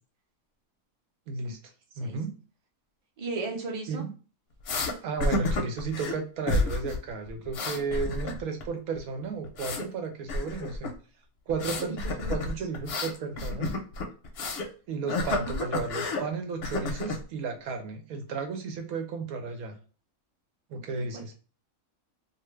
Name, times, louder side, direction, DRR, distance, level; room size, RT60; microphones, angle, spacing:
voice 1, 1.3-1.6 2.0-2.4 3.9-4.1 5.0-10.9 11.5-12.0 12.3-13.8 14.9-19.8 20.7-21.3, right 4 dB, 85° right, 4 dB, 1.2 m, -33 dB
voice 2, 3.2-4.0 11.9-12.3 15.0-15.6 21.1-21.3, right 3 dB, 35° right, 1 dB, 0.6 m, -36 dB
sound 1, 4.7-4.9 5.2-6.2 6.5-7.0 7.3-8.6 8.9-9.9 10.3-10.9 11.5-14.7 15.1-16.2 16.6-17.2, left 2 dB, 60° left, 0.7 m, -30 dB
2.6 x 2.5 x 3.1 m, 0.36 s
omnidirectional pair, 1.5 m